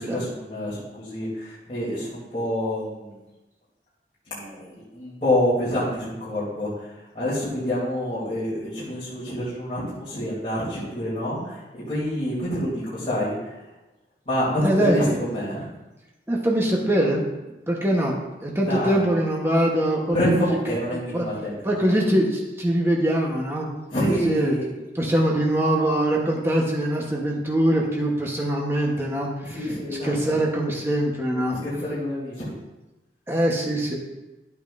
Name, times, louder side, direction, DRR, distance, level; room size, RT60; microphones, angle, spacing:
voice 1, 0.1-3.1 4.3-13.7 14.2-15.7 18.7-19.0 20.1-21.8 23.9-24.7 29.4-30.4 31.5-32.5, left 1 dB, 30° left, -10 dB, 3.1 m, -27 dB
voice 2, 14.6-15.0 16.3-17.2 17.7-18.1 18.4-20.4 21.1-21.2 21.6-23.7 24.2-24.5 24.9-29.6 30.0-31.6 33.3-34.0, right 1 dB, 15° right, -2 dB, 1.1 m, -23 dB
11.0 x 8.7 x 2.6 m, 1.0 s
head